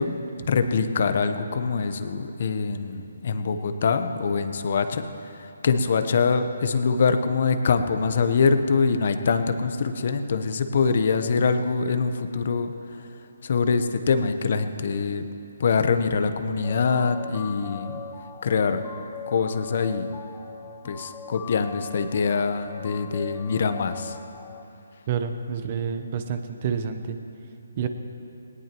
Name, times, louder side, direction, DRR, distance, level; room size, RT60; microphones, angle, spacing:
voice 1, 0.0-5.0 5.4-12.7 13.4-15.2 15.6-18.0 18.4-18.8 19.3-20.2 20.8-24.1, left 5 dB, 55° left, 9 dB, 0.9 m, -24 dB
sound 1, 16.6-24.6, left 6 dB, 15° left, 0.7 m, -41 dB
voice 2, 25.1-27.2 27.8-27.9, right 7 dB, 35° right, 8 dB, 0.9 m, -28 dB
19.0 x 18.0 x 3.1 m, 2.8 s
figure-of-eight pair, 150°, 0 cm